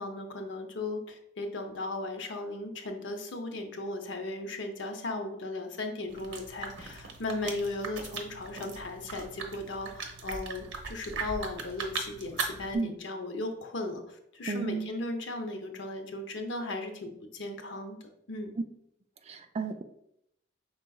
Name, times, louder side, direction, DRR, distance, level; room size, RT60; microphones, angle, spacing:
voice 1, 0.0-18.0 18.3-18.5, left 2 dB, 85° left, 5 dB, 0.7 m, -36 dB
sound 1, 6.1-12.8, right 4 dB, 85° right, 0.8 m, -39 dB
voice 2, 14.5-15.0 19.3-19.8, right 4 dB, 35° right, 7 dB, 0.3 m, -33 dB
5.5 x 3.8 x 2.3 m, 0.77 s
head